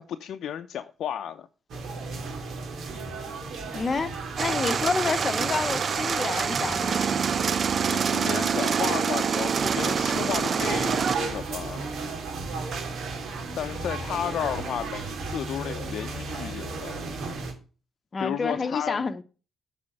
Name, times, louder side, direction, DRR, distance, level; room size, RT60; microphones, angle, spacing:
voice 1, 0.0-1.5 4.5-4.8 7.9-11.8 13.6-17.1 18.2-19.1, left 9 dB, 70° left, 0.7 m, -33 dB
sound 1, 1.7-17.5, right 3 dB, 65° right, 3.0 m, -35 dB
voice 2, 3.7-7.2 18.1-19.2, left 4 dB, 35° left, 1.0 m, -29 dB
sound 2, 4.4-11.2, right 6 dB, 45° right, 0.6 m, -26 dB
8.8 x 5.1 x 7.8 m
cardioid pair, 90°, 0 cm